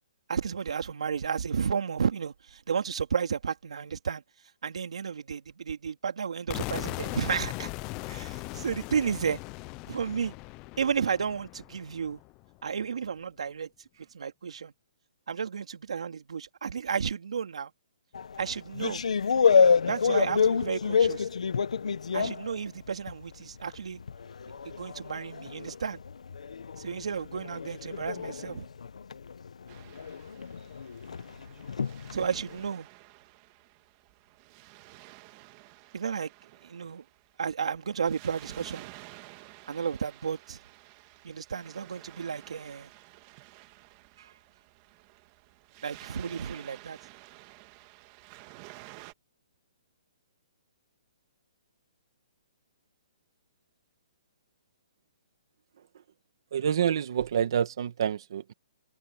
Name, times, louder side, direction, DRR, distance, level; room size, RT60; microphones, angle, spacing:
voice 1, 0.3-4.2 4.6-7.7 8.1-9.4 9.9-10.3 10.8-12.2 12.6-13.7 14.1-14.7 15.3-17.7 18.4-19.0 19.9-21.3 22.1-24.0 24.6-26.0 26.8-28.7 32.1-32.9 35.9-36.3 36.6-37.0 37.4-38.9 39.7-40.6 41.2-42.9 45.8-47.0, right 6 dB, 70° right, 3.0 m, -32 dB
sound 1, 6.5-12.4, left 22 dB, 15° left, 0.5 m, -39 dB
sound 2, 18.1-23.3 23.7-32.6, left 6 dB, 85° left, 1.0 m, -28 dB
Waves surf, 29.7-49.1, right 19 dB, 20° right, 1.7 m, -52 dB
voice 2, 56.5-58.5, right 8 dB, 40° right, 1.5 m, -28 dB
hypercardioid pair, 180°, 4 cm